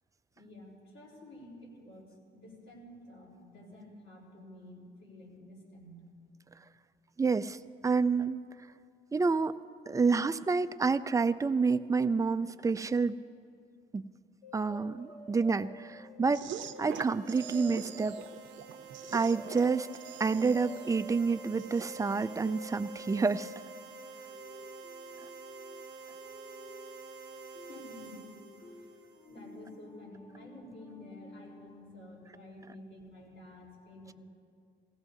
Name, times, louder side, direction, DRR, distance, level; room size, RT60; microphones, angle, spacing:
voice 1, 0.4-2.0 2.3-6.0 27.5-28.2 28.8-28.9 29.3-34.1, left 1 dB, 70° left, -3 dB, 3.9 m, -51 dB
voice 2, 7.2-7.6 7.8-8.4 9.1-9.5 9.9-13.2 13.9-14.0 14.5-16.5 16.8-18.2 19.1-19.9 20.2-23.5, right 4 dB, 15° right, 11 dB, 0.4 m, -28 dB
sound 1, 14.4-31.8, left 1 dB, 35° left, 1.4 m, -51 dB
sound 2, 16.3-22.4, right 9 dB, 70° right, 0.6 m, -45 dB
sound 3, 16.9-29.6, right 5 dB, 45° right, 1.2 m, -49 dB
17.5 x 16.0 x 2.7 m, 2.4 s
cardioid pair, 90°, 20 cm